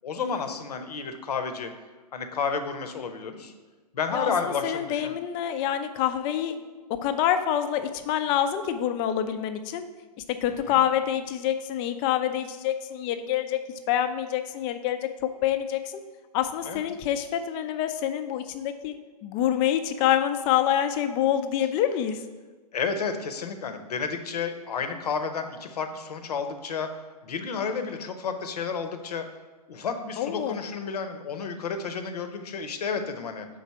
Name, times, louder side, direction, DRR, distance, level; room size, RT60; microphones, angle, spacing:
voice 1, 0.0-1.7 2.1-3.5 3.9-5.1 10.6-10.8 16.7-16.8 22.7-26.9 27.2-29.2 29.7-33.5, left 5 dB, 70° left, 7 dB, 0.7 m, -31 dB
voice 2, 4.1-6.6 7.0-9.8 10.3-13.6 13.9-15.0 15.4-16.0 16.3-18.9 19.2-22.2 30.2-30.6, left 10 dB, 25° left, 9 dB, 0.4 m, -26 dB
4.8 x 3.8 x 5.6 m, 1.3 s
hypercardioid pair, 120°, 21 cm